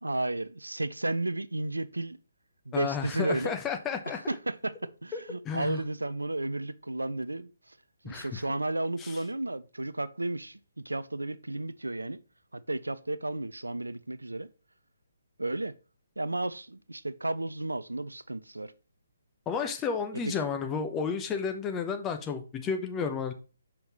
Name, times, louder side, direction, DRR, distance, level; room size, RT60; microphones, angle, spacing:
voice 1, 0.0-2.2 2.7-3.6 4.1-7.8 8.0-12.2 12.5-14.5 15.4-15.7 16.2-18.7 20.3-20.4, right 2 dB, 80° right, 0.4 m, -33 dB
voice 2, 2.7-4.2 5.1-5.8 8.0-8.4 9.0-9.1 19.5-23.3, left 6 dB, 15° left, 0.7 m, -32 dB
5.7 x 5.4 x 3.0 m
figure-of-eight pair, 135°, 0 cm